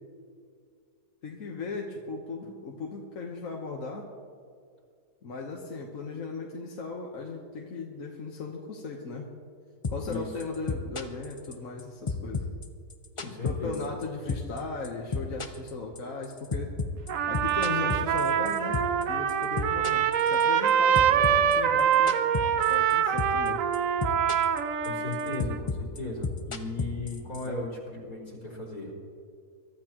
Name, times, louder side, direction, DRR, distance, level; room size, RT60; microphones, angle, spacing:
voice 1, 1.2-4.1 5.2-9.3 9.9-12.5 13.2-16.7 17.3-18.8 19.1-22.2 22.5-23.6 27.5-27.6, left 4 dB, 60° left, -1 dB, 1.5 m, -37 dB
sound 1, 9.8-10.1 10.4-11.8 12.1-14.0 14.3-14.6 14.8-19.0 19.3-20.7 20.9-22.9 23.2-23.5 23.7-24.6 24.8-27.5, left 4 dB, 40° left, 0.4 m, -32 dB
voice 2, 13.2-13.9 24.8-28.9, left 2 dB, 75° left, -3 dB, 4.6 m, -36 dB
Trumpet, 17.1-25.6, right 8 dB, 65° right, 1.0 m, -25 dB
23.0 x 13.0 x 3.0 m, 2.2 s
omnidirectional pair, 1.7 m